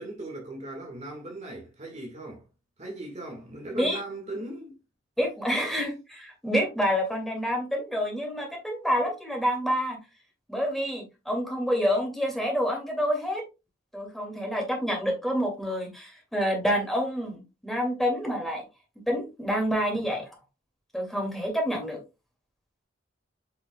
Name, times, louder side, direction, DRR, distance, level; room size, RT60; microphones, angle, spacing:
voice 1, 0.0-2.5 2.8-4.7, right 2 dB, 35° right, 1.7 m, -38 dB
voice 2, 5.2-10.0 10.5-13.4 13.9-18.6 19.1-20.3 20.9-22.0, equal, ahead, 2.3 m, -28 dB
8.5 x 5.1 x 2.3 m
head